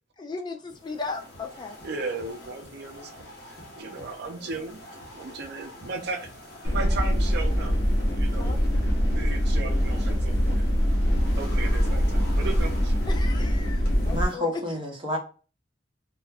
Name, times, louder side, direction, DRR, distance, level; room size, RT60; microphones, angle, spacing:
voice 1, 0.2-1.8 8.4-8.6 13.1-14.5, left 4 dB, 25° left, 0.3 m, -36 dB
sound 1, 0.7-14.4, left 1 dB, 55° left, 0.8 m, -46 dB
voice 2, 1.8-4.8 5.1-6.3 6.6-7.9 8.1-8.6 9.1-10.9 11.4-13.0, right 3 dB, 60° right, 0.5 m, -36 dB
sound 2, 6.6-14.2, equal, 85° left, 0.9 m, -23 dB
voice 3, 14.0-15.2, left 1 dB, 30° right, 0.7 m, -29 dB
2.3 x 2.1 x 3.3 m
head